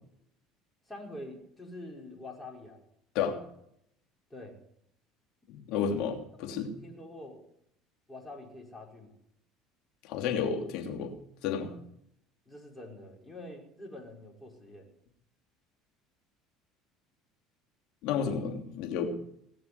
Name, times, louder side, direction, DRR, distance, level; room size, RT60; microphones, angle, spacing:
voice 1, 0.9-2.8 4.3-4.6 5.7-7.4 8.1-9.2 12.5-14.9, left 1 dB, 10° left, -1 dB, 5.4 m, -46 dB
voice 2, 5.5-6.7 10.0-11.1 11.4-11.7 18.0-19.2, left 7 dB, 70° left, 3 dB, 2.9 m, -31 dB
19.0 x 6.9 x 9.5 m, 0.73 s
supercardioid pair, 90°, 0 cm